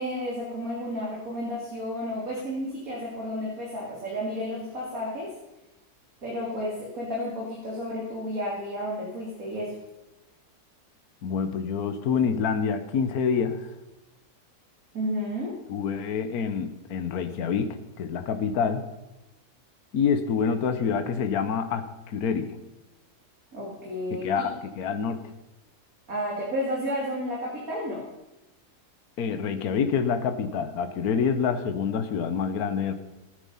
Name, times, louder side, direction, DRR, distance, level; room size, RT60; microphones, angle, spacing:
voice 1, 0.0-5.3 6.2-9.7 14.9-15.6 23.5-24.4 26.1-28.0, equal, 60° right, -4 dB, 3.4 m, -32 dB
voice 2, 11.2-13.6 15.7-18.8 19.9-22.6 24.1-25.2 29.2-32.9, left 6 dB, 70° left, 8 dB, 1.5 m, -27 dB
19.0 x 9.6 x 5.6 m, 0.99 s
omnidirectional pair, 1.7 m